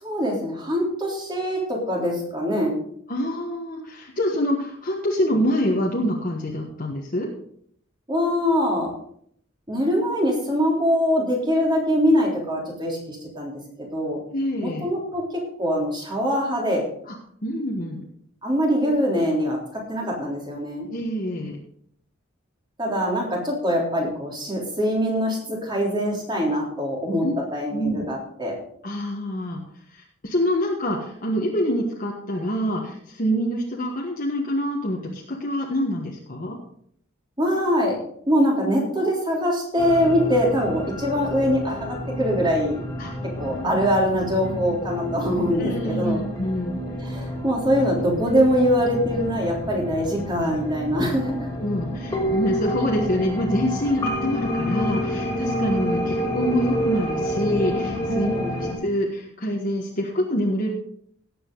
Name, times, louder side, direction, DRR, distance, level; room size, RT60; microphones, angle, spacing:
voice 1, 0.0-2.8 8.1-8.9 9.7-13.5 13.9-14.2 14.6-16.8 18.4-19.6 19.9-20.9 22.8-27.3 27.5-28.6 37.4-37.9 38.3-42.8 43.4-46.2 47.0-51.3 58.1-58.6, equal, 20° right, -2 dB, 3.5 m, -23 dB
voice 2, 3.1-7.3 14.3-14.9 17.1-17.2 17.4-18.0 20.9-21.6 27.2-27.3 27.7-28.0 28.8-29.6 29.9-36.6 43.0-43.1 43.5-43.8 45.5-46.8 51.1-51.2 51.6-58.3 58.6-60.7, equal, 40° left, -2 dB, 1.5 m, -26 dB
sound 1, 39.8-58.7, equal, 15° left, 3.0 m, -29 dB
18.0 x 7.9 x 3.9 m, 0.66 s
head